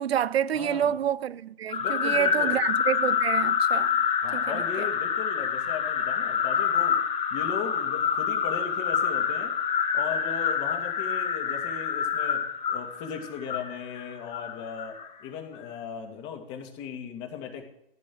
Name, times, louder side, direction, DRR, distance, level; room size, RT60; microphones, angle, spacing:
voice 1, 0.0-3.9 4.3-4.9, right 10 dB, 85° right, 0.5 m, -28 dB
voice 2, 0.5-0.9 1.8-2.6 4.2-7.0 7.3-9.5 9.9-12.4 12.7-17.6, left 7 dB, 40° left, 2.4 m, -37 dB
sound 1, 1.7-15.1, left 7 dB, 20° left, 1.3 m, -27 dB
15.0 x 5.3 x 7.8 m
hypercardioid pair, 120°, 30 cm